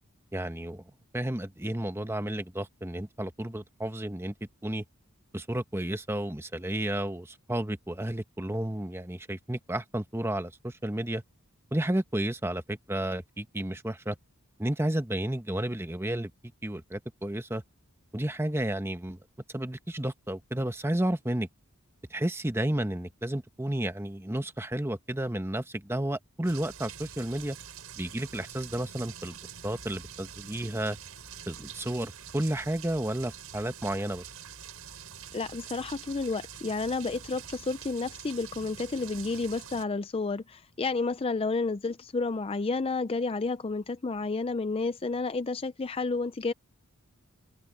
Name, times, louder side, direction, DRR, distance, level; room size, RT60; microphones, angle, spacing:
voice 1, 0.3-0.8 1.1-4.3 4.6-4.8 5.3-11.2 11.7-14.2 14.6-16.3 16.6-17.6 18.1-19.2 19.5-21.5 22.1-27.6 28.0-29.4 29.6-31.0 31.5-34.2, right 1 dB, 10° right, 1.0 m, -32 dB
sound 1, 26.4-39.9, right 8 dB, 75° right, 7.4 m, -46 dB
voice 2, 35.3-46.5, left 3 dB, 25° left, 0.4 m, -31 dB
open air
head